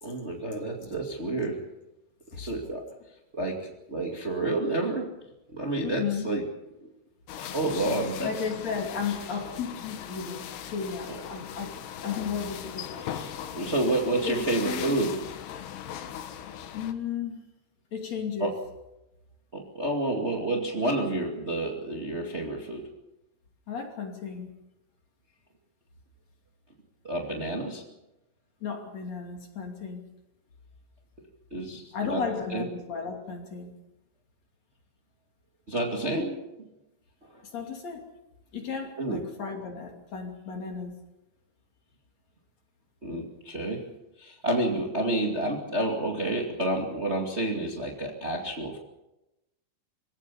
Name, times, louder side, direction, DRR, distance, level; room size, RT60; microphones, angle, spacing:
voice 1, 0.0-1.6 2.4-2.9 3.3-5.1 5.5-6.4 7.4-8.3 11.1-11.2 13.0-15.1 18.4-18.5 19.5-22.9 27.0-27.9 31.5-32.2 32.5-32.7 35.7-36.4 39.0-39.2 43.0-43.9 44.2-48.8, right 1 dB, 70° right, 1 dB, 0.6 m, -29 dB
voice 2, 5.8-6.3 8.2-13.1 13.6-13.9 14.2-15.0 16.7-17.4 17.9-18.5 23.7-24.5 28.6-30.0 31.9-33.7 37.4-38.0 38.5-41.0, left 6 dB, 40° left, 3 dB, 3.3 m, -34 dB
sound 1, 7.3-16.9, left 10 dB, 65° left, 3.2 m, -39 dB
26.0 x 17.0 x 7.0 m, 0.95 s
omnidirectional pair, 5.6 m